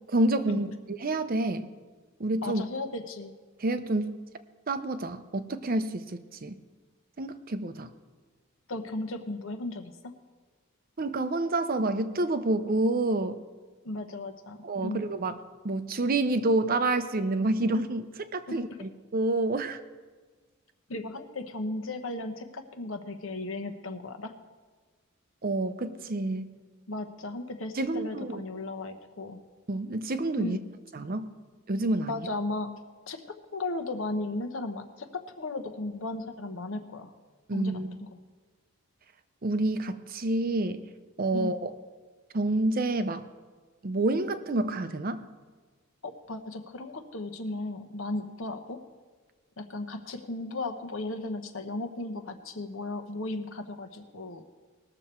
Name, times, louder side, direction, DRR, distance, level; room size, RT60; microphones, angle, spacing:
voice 1, 0.1-1.7 2.2-2.6 3.6-4.2 4.7-6.6 7.2-7.9 11.0-13.4 14.6-15.4 15.6-19.8 25.4-26.5 27.7-28.4 29.7-30.6 30.9-31.3 31.7-32.3 37.5-38.0 39.4-40.9 41.2-41.7 42.3-43.2 43.8-45.3, right 2 dB, 40° right, 11 dB, 0.6 m, -28 dB
voice 2, 2.4-3.3 8.7-10.1 13.8-15.0 18.5-18.6 20.9-24.3 26.9-29.4 30.4-30.6 32.1-32.7 33.1-33.2 33.5-37.1 37.5-37.7 38.0-38.2 41.3-41.6 46.0-48.8 49.6-54.4, left 2 dB, 65° left, 7 dB, 1.0 m, -35 dB
19.5 x 6.9 x 4.4 m, 1.4 s
head